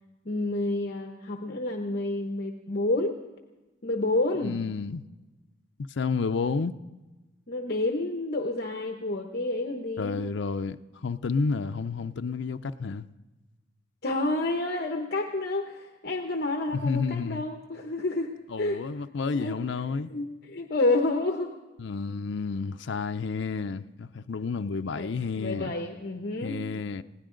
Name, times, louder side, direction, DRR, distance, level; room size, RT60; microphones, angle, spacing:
voice 1, 0.2-3.1 3.8-4.6 7.5-10.2 14.0-18.3 18.6-18.8 19.3-19.6 20.1-21.5 25.0-26.6, left 2 dB, 55° left, 3 dB, 0.9 m, -29 dB
voice 2, 4.4-5.0 5.9-6.7 10.0-13.1 16.7-17.4 18.5-20.1 21.8-25.7 26.4-27.0, left 4 dB, 75° left, 8 dB, 0.5 m, -30 dB
21.0 x 16.5 x 3.8 m, 1.1 s
head